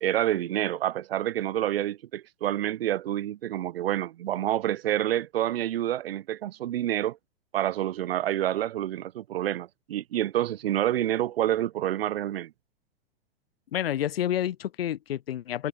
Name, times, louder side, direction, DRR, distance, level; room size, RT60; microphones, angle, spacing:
voice 1, 0.0-7.2 7.5-12.5, right 12 dB, 70° right, 0.5 m, -28 dB
voice 2, 13.7-15.7, left 11 dB, 75° left, 0.7 m, -29 dB
hypercardioid pair, 105°, 30 cm